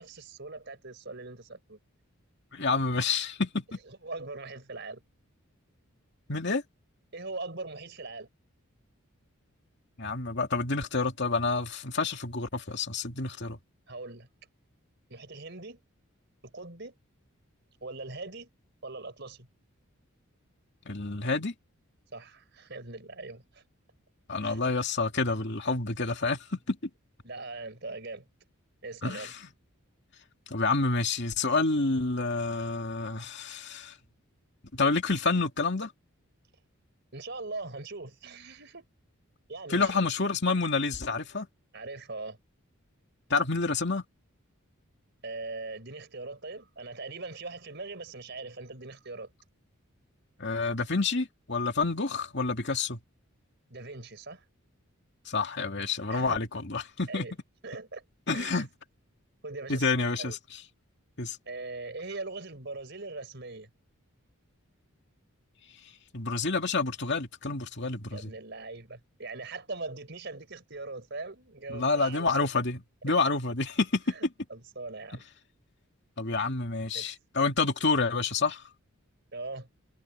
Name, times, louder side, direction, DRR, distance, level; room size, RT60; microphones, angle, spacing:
voice 1, 0.0-1.8 3.9-5.0 7.1-8.3 13.9-14.3 15.1-15.8 16.4-16.9 17.8-18.5 18.8-19.5 22.1-23.6 24.4-24.6 27.2-28.2 28.8-29.3 37.1-38.9 39.5-40.1 41.7-42.4 45.2-49.3 53.7-54.4 56.1-56.4 57.1-57.3 57.6-58.0 58.3-58.7 59.4-60.4 61.5-63.7 68.1-72.5 74.1-75.2 76.9-77.1 79.3-79.7, right 3 dB, 50° right, 4.7 m, -41 dB
voice 2, 2.5-3.6 6.3-6.6 10.0-13.6 20.9-21.5 24.3-26.8 29.0-29.3 30.5-34.0 34.7-35.9 39.7-41.5 43.3-44.0 50.4-53.0 55.3-57.3 58.3-58.7 59.7-60.4 61.2-61.4 66.1-68.3 71.7-74.2 76.2-78.6, left 3 dB, 50° left, 2.6 m, -28 dB
head